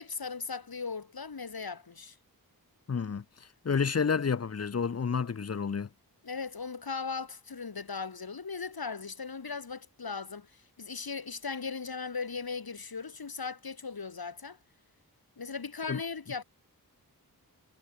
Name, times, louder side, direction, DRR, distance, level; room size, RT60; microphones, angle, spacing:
voice 1, 0.0-2.2 6.2-14.6 15.4-16.4, left 5 dB, 70° left, 6.4 m, -38 dB
voice 2, 2.9-3.2 3.6-5.9 15.9-16.0, left 6 dB, 40° left, 0.7 m, -29 dB
wide cardioid pair, 100°, 37 cm